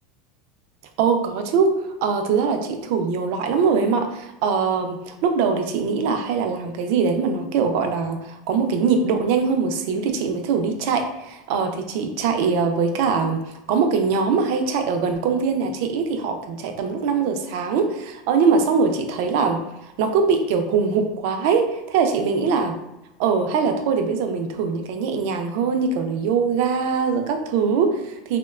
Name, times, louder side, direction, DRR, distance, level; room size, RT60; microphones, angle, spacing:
voice 1, 1.0-22.7 23.2-28.4, right 5 dB, 60° right, 5 dB, 0.3 m, -22 dB
2.9 x 2.1 x 2.3 m, 0.93 s
supercardioid pair, 160°, 0 cm